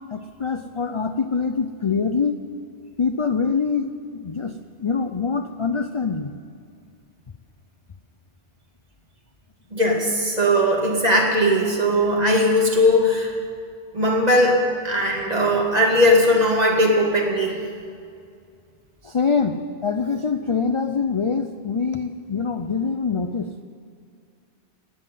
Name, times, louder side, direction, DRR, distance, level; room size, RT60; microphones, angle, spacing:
voice 1, 0.1-2.3 3.0-3.9 4.1-4.5 4.8-6.3 19.0-19.6 19.8-23.5, left 5 dB, 45° left, 8 dB, 0.4 m, -24 dB
voice 2, 9.7-13.3 13.9-17.6, equal, 35° right, -1 dB, 2.4 m, -19 dB
18.0 x 7.9 x 9.1 m, 2.3 s
omnidirectional pair, 1.2 m